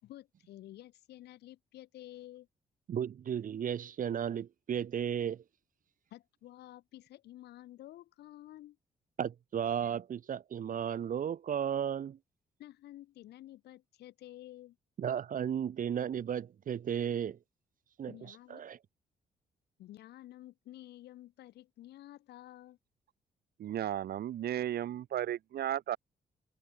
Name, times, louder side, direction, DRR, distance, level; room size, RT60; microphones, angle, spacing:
voice 1, 0.0-2.5 6.1-8.8 12.6-14.8 18.1-18.6 19.8-22.8, left 14 dB, 80° left, 5.2 m, -51 dB
voice 2, 2.9-5.4 9.2-12.2 15.0-17.4 18.0-18.1 18.5-18.8, right 8 dB, 55° right, 0.8 m, -34 dB
voice 3, 23.6-26.0, right 11 dB, 70° right, 1.3 m, -34 dB
supercardioid pair, 55°, 17 cm